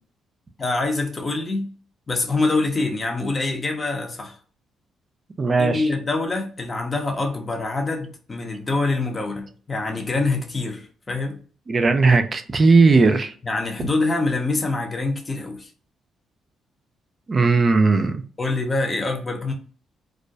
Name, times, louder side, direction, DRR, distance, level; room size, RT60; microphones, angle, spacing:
voice 1, 0.6-1.7 2.1-4.4 5.6-11.4 13.4-15.7 18.4-19.5, left 3 dB, 30° left, 0.6 m, -25 dB
voice 2, 5.4-5.9 11.7-13.3 13.8-13.9 17.3-18.2, right 3 dB, 35° right, 0.4 m, -17 dB
2.3 x 2.1 x 2.6 m
cardioid pair, 90°, 0 cm